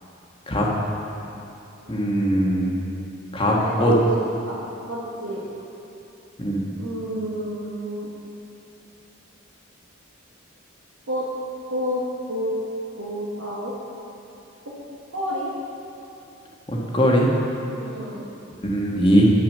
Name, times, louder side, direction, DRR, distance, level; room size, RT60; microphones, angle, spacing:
voice 1, 1.9-2.8 3.3-3.9 6.4-6.6 16.7-17.3 18.6-19.3, equal, 25° left, -3 dB, 1.3 m, -20 dB
voice 2, 3.4-4.1 4.5-4.6 4.9-5.4 6.8-8.1 11.1-11.3 11.7-12.0 12.3-12.5 13.0-13.7 14.6-14.7 15.1-15.5 17.7-18.3, equal, 85° right, -7 dB, 1.5 m, -30 dB
9.5 x 6.0 x 6.6 m, 2.8 s
head